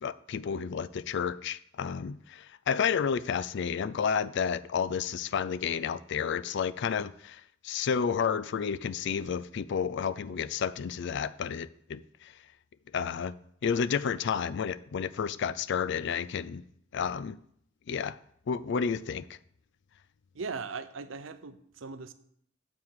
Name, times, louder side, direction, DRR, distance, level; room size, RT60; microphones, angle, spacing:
voice 1, 0.0-12.3 12.9-13.3 13.6-16.6 16.9-17.4 17.9-18.2 18.5-19.4, left 6 dB, 60° left, 0.4 m, -31 dB
voice 2, 20.3-22.1, right 4 dB, 75° right, 0.7 m, -39 dB
7.7 x 4.8 x 7.2 m
head